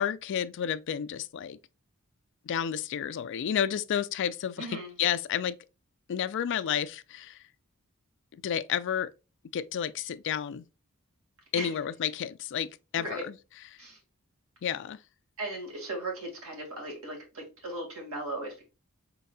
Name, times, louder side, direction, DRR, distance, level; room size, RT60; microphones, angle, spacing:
voice 1, 0.0-1.6 2.5-5.6 6.1-7.4 8.3-9.1 9.5-10.6 11.5-13.2 14.6-15.0, left 9 dB, 55° left, 0.3 m, -31 dB
voice 2, 4.6-4.9 11.5-11.8 12.9-13.2 13.8-14.0 15.4-18.6, right 2 dB, 75° right, 1.9 m, -37 dB
4.7 x 4.0 x 2.2 m
head